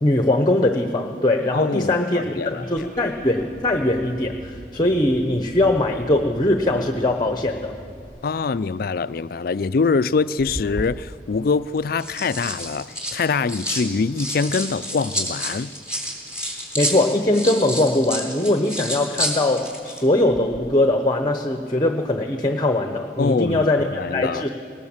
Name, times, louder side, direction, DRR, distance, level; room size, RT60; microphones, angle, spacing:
voice 1, 0.0-7.7 16.7-24.5, left 1 dB, 25° left, 5 dB, 0.9 m, -21 dB
voice 2, 1.5-2.9 8.2-15.7 23.2-23.7 23.9-24.5, left 4 dB, 55° left, 16 dB, 0.4 m, -24 dB
Car / Engine starting, 2.6-8.0, equal, 55° right, 3.5 m, -43 dB
Pill Bottle Shaking, 10.4-10.9 11.8-13.9 14.2-20.0 20.3-20.6, equal, 5° right, 3.5 m, -29 dB
19.5 x 19.0 x 7.3 m, 2.3 s
head